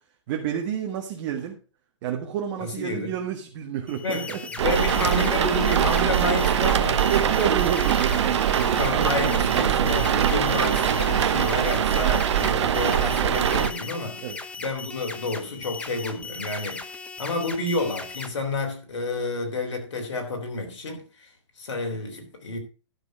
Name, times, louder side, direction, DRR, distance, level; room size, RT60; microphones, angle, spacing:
voice 1, 0.3-1.6 2.0-4.4 7.1-9.9 14.2-14.4, right 9 dB, 45° right, 1.7 m, -30 dB
voice 2, 2.6-3.2 4.0-7.3 8.6-14.3 14.6-21.3 21.6-22.6, left 2 dB, 80° left, 3.5 m, -30 dB
sound 1, 3.9-18.3, left 4 dB, 10° left, 0.9 m, -38 dB
sound 2, 4.6-13.7, right 9 dB, 70° right, 0.9 m, -22 dB
11.5 x 6.2 x 4.8 m
hypercardioid pair, 130°, 15 cm